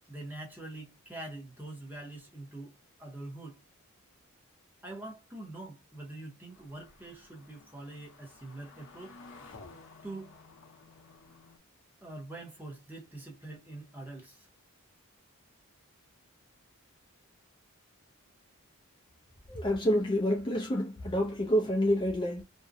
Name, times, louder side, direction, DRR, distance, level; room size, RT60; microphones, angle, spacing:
voice 1, 0.1-3.6 4.8-9.2 10.0-10.4 12.0-14.5, right 2 dB, 10° right, 0.7 m, -44 dB
sound 1, 6.5-11.6, left 3 dB, 55° left, 0.7 m, -54 dB
voice 2, 19.5-22.4, equal, 20° left, 0.4 m, -28 dB
2.6 x 2.1 x 2.5 m
head